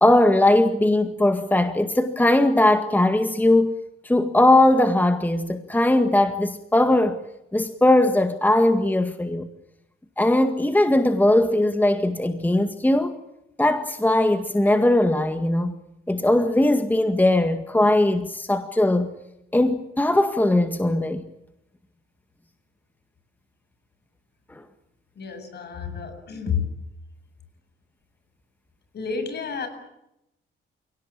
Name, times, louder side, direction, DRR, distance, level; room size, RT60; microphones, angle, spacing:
voice 1, 0.0-3.8 4.0-7.2 7.5-9.5 10.2-13.2 13.6-15.8 16.1-19.1 19.5-21.2 24.5-24.6, left 1 dB, 10° left, 1.9 m, -19 dB
voice 2, 25.2-26.7 28.9-29.7, left 6 dB, 55° left, 7.9 m, -30 dB
30.0 x 17.5 x 8.7 m
cardioid pair, 90°, 20 cm